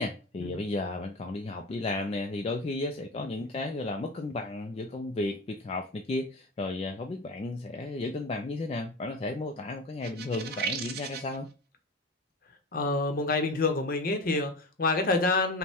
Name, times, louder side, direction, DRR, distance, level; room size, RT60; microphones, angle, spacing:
voice 1, 0.0-11.5, left 2 dB, 35° left, 0.3 m, -34 dB
sound 1, 10.0-11.4, right 7 dB, 60° right, 0.6 m, -35 dB
voice 2, 12.7-15.6, left 3 dB, 55° left, 0.8 m, -27 dB
5.2 x 2.1 x 3.4 m
head